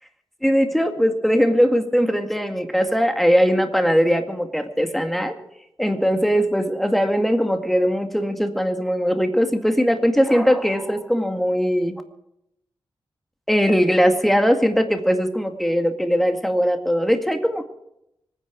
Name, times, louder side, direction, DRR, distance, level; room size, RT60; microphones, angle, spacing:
voice 1, 0.4-5.3 5.8-12.0 13.5-17.6, equal, ahead, 5 dB, 2.0 m, -20 dB
25.5 x 10.0 x 4.7 m, 0.80 s
wide cardioid pair, 80°, 9 cm